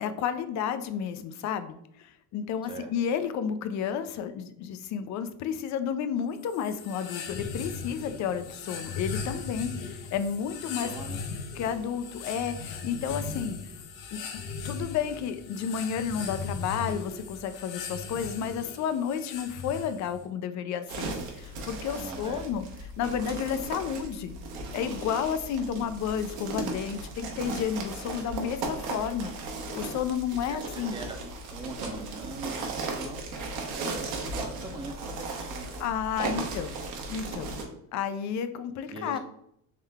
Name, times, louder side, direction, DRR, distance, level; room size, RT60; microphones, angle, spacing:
voice 1, 0.0-10.9 11.5-13.6 14.1-14.2 14.6-22.7 23.0-24.3 24.7-29.3 29.7-31.0 35.8-36.8 37.1-37.6 37.9-39.2, left 8 dB, 45° left, 11 dB, 0.4 m, -31 dB
sound 1, 6.4-20.2, left 4 dB, 80° left, 0.9 m, -38 dB
voice 2, 10.6-11.2 13.1-13.5 21.9-22.5 30.5-31.2 31.5-33.2 33.6-35.9 36.3-36.5 38.9-39.2, right 2 dB, 15° right, 3 dB, 0.6 m, -41 dB
sound 2, 20.9-37.6, right 3 dB, 65° right, 1.0 m, -36 dB
3.7 x 3.1 x 3.4 m, 0.73 s
cardioid pair, 130°, 39 cm